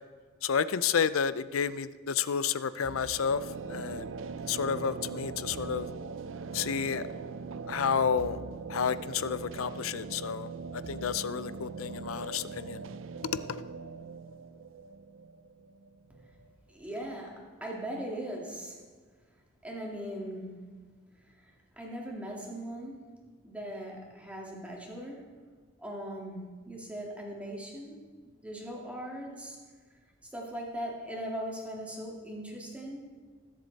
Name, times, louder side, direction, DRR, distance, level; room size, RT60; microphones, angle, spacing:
voice 1, 0.4-3.4 3.7-4.1 4.5-5.9 6.5-7.0 7.7-8.4 8.7-10.5 10.9-12.8, left 7 dB, 90° left, 15 dB, 0.5 m, -30 dB
sound 1, 2.8-16.5, right 4 dB, 70° right, 0.5 m, -41 dB
voice 2, 16.7-18.8 19.6-20.7 21.8-23.1 23.4-25.3 25.8-28.0 28.4-29.6 30.3-33.1, right 1 dB, 5° right, -2 dB, 2.3 m, -39 dB
21.0 x 7.6 x 4.1 m, 1.5 s
head